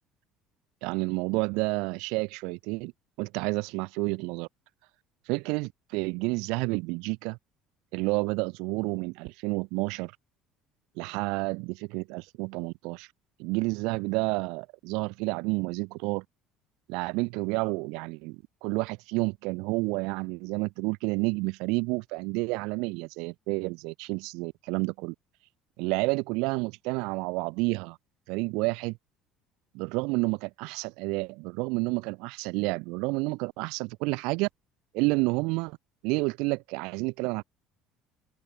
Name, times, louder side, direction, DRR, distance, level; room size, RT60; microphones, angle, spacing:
voice 1, 0.8-2.9 3.2-4.5 5.3-7.4 7.9-10.1 11.0-13.1 13.4-16.2 16.9-25.1 25.8-28.0 28.3-29.0 29.7-34.5 34.9-35.8 36.0-37.4, right 27 dB, 75° right, 2.5 m, -30 dB
open air
hypercardioid pair, 75°, 0 cm